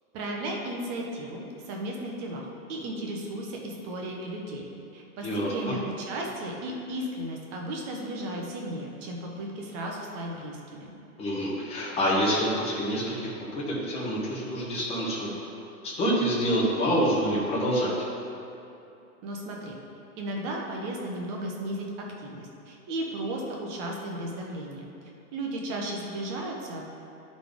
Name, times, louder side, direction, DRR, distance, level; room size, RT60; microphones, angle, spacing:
voice 1, 0.1-4.6 4.9-10.9 19.2-19.8 20.2-24.8 25.3-26.8, right 1 dB, 20° right, -1 dB, 0.6 m, -35 dB
voice 2, 5.2-5.7 11.2-15.3 15.8-17.9, equal, 15° left, -5 dB, 1.1 m, -27 dB
11.0 x 4.1 x 3.5 m, 2.8 s
hypercardioid pair, 150°, 45 cm